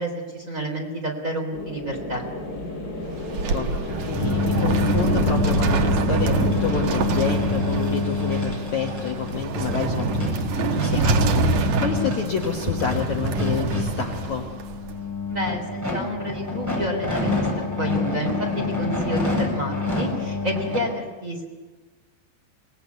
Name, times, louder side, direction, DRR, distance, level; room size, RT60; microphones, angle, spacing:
voice 1, 0.0-2.2 15.3-17.5 17.8-21.4, right 1 dB, 20° right, 1 dB, 3.3 m, -29 dB
sound 1, 1.5-9.1, left 1 dB, 25° left, 3.2 m, -33 dB
sound 2, 3.0-14.9, right 3 dB, 60° right, 2.0 m, -25 dB
voice 2, 3.5-10.3 10.5-14.5, left 6 dB, 55° left, 2 dB, 2.3 m, -29 dB
sound 3, 4.1-20.8, left 3 dB, 5° right, 7.8 m, -27 dB
25.5 x 19.5 x 9.4 m, 1.3 s
omnidirectional pair, 5.0 m